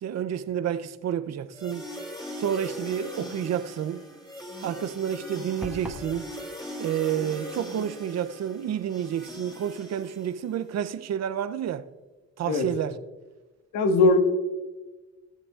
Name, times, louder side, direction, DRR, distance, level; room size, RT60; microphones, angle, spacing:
voice 1, 0.0-1.9 2.3-4.1 4.6-6.3 6.8-11.8 12.4-13.0, right 9 dB, 60° right, 0.6 m, -30 dB
sound 1, 1.5-10.7, equal, 15° left, 2.9 m, -40 dB
sound 2, 5.6-6.1, right 2 dB, 5° right, 1.4 m, -37 dB
voice 2, 13.7-14.2, left 2 dB, 75° left, 1.6 m, -20 dB
18.0 x 7.6 x 2.4 m
cardioid pair, 90°, 30 cm